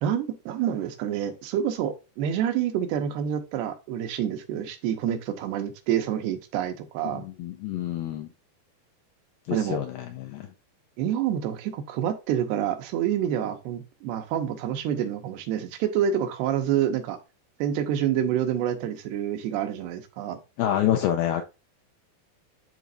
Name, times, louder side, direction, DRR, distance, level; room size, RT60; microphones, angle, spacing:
voice 1, 0.0-7.2 9.5-9.8 11.0-17.2 17.6-20.4, right 9 dB, 85° right, 2.9 m, -27 dB
voice 2, 7.0-8.3 9.5-10.5 20.6-21.4, left 11 dB, 80° left, 2.0 m, -27 dB
12.0 x 4.1 x 2.6 m
omnidirectional pair, 4.7 m